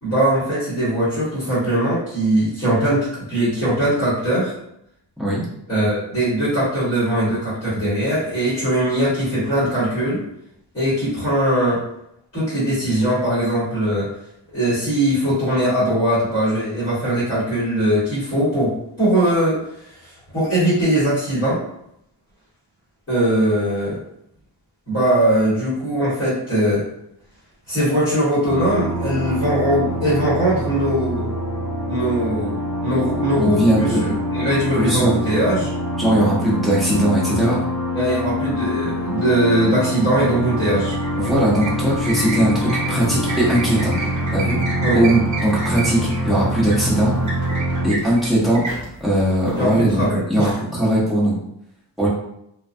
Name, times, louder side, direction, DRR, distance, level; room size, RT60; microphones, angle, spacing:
voice 1, 0.0-4.5 5.7-10.2 10.7-11.8 12.3-14.1 14.5-19.6 20.0-21.6 23.1-24.0 24.9-26.9 27.7-31.3 31.9-35.7 37.9-40.9 44.8-45.0 49.5-50.5, right 1 dB, 30° left, -12 dB, 1.2 m, -20 dB
sound 1, 28.4-47.9, equal, 50° left, 0.5 m, -25 dB
voice 2, 33.4-34.0 34.8-35.1 36.0-37.6 41.2-44.0 44.3-47.1 47.8-48.6 49.0-50.0 50.3-51.4 52.0-52.1, right 1 dB, ahead, -8 dB, 0.7 m, -19 dB
sound 2, 40.8-50.1, right 2 dB, 40° right, 0.7 m, -31 dB
2.2 x 2.2 x 2.5 m, 0.76 s
wide cardioid pair, 160°, 45 cm